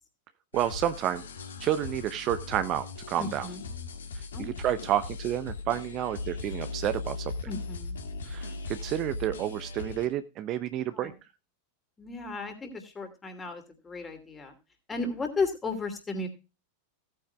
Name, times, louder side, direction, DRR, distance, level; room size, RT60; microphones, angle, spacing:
sound 1, 0.5-10.1, left 3 dB, 65° left, 2.0 m, -38 dB
voice 1, 0.5-1.2 1.6-3.5 4.1-7.3 8.2-11.1, right 12 dB, 35° right, 11 dB, 0.7 m, -30 dB
voice 2, 3.2-3.6 4.3-4.5 7.5-8.0 10.9-11.1 12.0-14.5 14.9-16.3, left 3 dB, 15° left, 6 dB, 2.7 m, -34 dB
16.5 x 9.0 x 2.3 m, 0.29 s
figure-of-eight pair, 90°, 0 cm